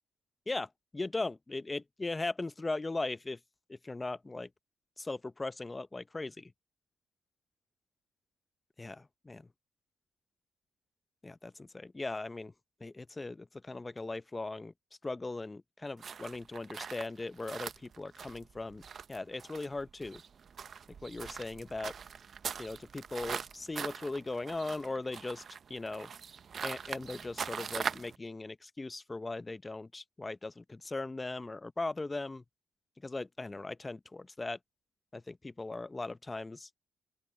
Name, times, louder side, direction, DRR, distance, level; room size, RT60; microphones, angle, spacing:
voice 1, 0.5-3.4 3.7-4.5 5.0-6.5 8.8-9.4 11.2-12.5 12.8-14.7 15.0-18.8 19.1-20.2 21.0-21.9 22.6-25.4 25.7-26.1 26.6-32.4 33.0-34.6 35.1-36.7, left 2 dB, 20° left, 0.6 m, -39 dB
sound 1, 16.0-28.2, right 7 dB, 50° right, 0.7 m, -42 dB
open air
cardioid pair, 90°, 0 cm